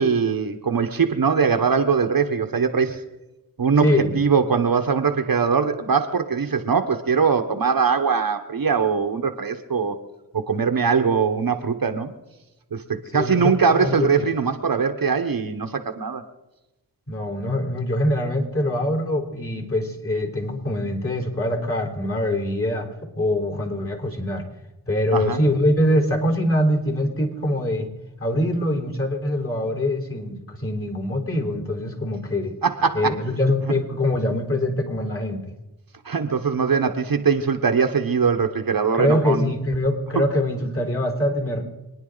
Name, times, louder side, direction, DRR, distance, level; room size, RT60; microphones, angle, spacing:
voice 1, 0.0-3.0 3.6-9.9 10.5-12.1 12.7-16.2 25.1-25.4 32.6-33.1 36.0-39.5 40.1-40.2, right 5 dB, 55° right, 6 dB, 1.3 m, -21 dB
voice 2, 3.8-4.2 13.1-14.3 17.1-22.9 23.2-24.5 24.9-27.9 28.2-32.6 32.9-35.5 38.9-41.6, left 1 dB, 30° left, 1 dB, 4.0 m, -23 dB
26.5 x 9.9 x 4.0 m, 1.0 s
cardioid pair, 50°, 42 cm